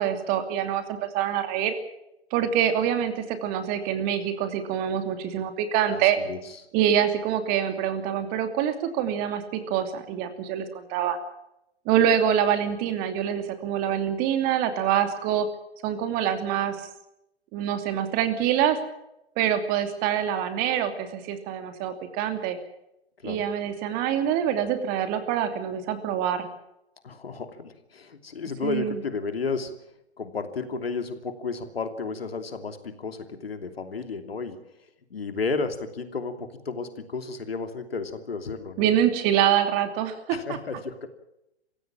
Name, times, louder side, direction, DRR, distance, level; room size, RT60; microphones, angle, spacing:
voice 1, 0.0-1.8 2.3-6.2 6.7-11.2 11.9-15.5 15.8-16.9 17.5-18.8 19.4-22.6 23.2-26.5 28.6-29.0 38.8-40.4, right 9 dB, 25° right, 9 dB, 2.7 m, -25 dB
voice 2, 5.9-6.5 23.2-23.4 27.0-29.7 30.2-34.6 35.1-38.9 40.3-41.1, left 4 dB, 65° left, 8 dB, 3.0 m, -32 dB
27.5 x 16.0 x 7.4 m, 0.85 s
figure-of-eight pair, 120°, 32 cm